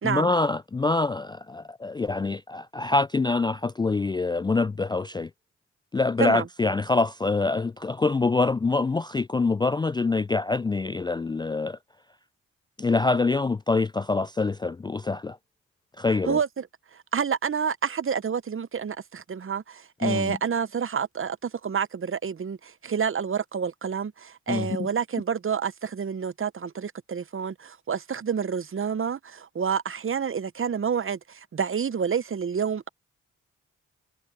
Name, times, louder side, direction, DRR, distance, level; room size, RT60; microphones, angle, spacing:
voice 1, 0.0-5.3 5.9-11.8 12.8-15.4 16.0-16.4 20.0-20.4 24.5-24.7, left 3 dB, 15° left, 0.3 m, -25 dB
voice 2, 16.2-16.7 16.9-32.9, right 7 dB, 45° right, 1.0 m, -28 dB
supercardioid pair, 45°, 30 cm